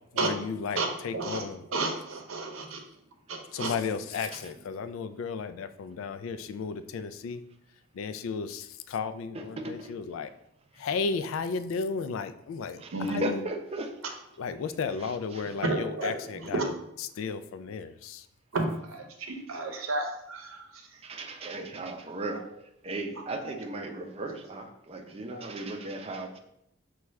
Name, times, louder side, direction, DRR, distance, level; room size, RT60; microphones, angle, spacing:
voice 1, 0.1-1.6 3.5-7.4 7.9-10.3 10.7-12.8 13.1-13.5 14.4-18.3, left 5 dB, 75° left, 11 dB, 0.3 m, -34 dB
voice 2, 1.7-2.8 3.3-3.7 12.9-13.2 15.6-16.2 16.5-16.7 18.5-21.0 23.4-23.6 25.3-25.4, right 2 dB, 85° right, 3 dB, 0.7 m, -32 dB
voice 3, 9.3-9.9 12.7-13.9 15.0-15.5 21.0-22.4 22.8-26.4, right 2 dB, 30° right, 3 dB, 0.5 m, -37 dB
5.9 x 2.3 x 3.1 m, 0.78 s
head